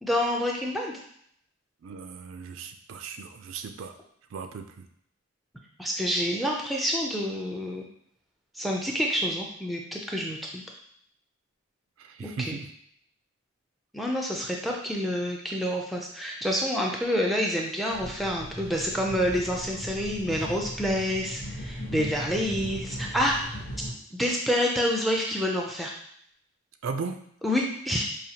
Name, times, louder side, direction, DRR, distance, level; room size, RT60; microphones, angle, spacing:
voice 1, 0.0-1.0 5.8-7.8 8.5-10.6 12.2-12.6 13.9-23.4 24.1-25.9 27.4-28.1, equal, ahead, -1 dB, 0.4 m, -28 dB
voice 2, 1.8-3.9 4.3-4.9 12.0-12.7 21.9-22.1 26.8-27.2, right 5 dB, 70° right, 7 dB, 0.3 m, -37 dB
sound 1, 17.9-23.9, equal, 90° left, 1.1 m, -38 dB
4.9 x 2.3 x 2.8 m, 0.68 s
head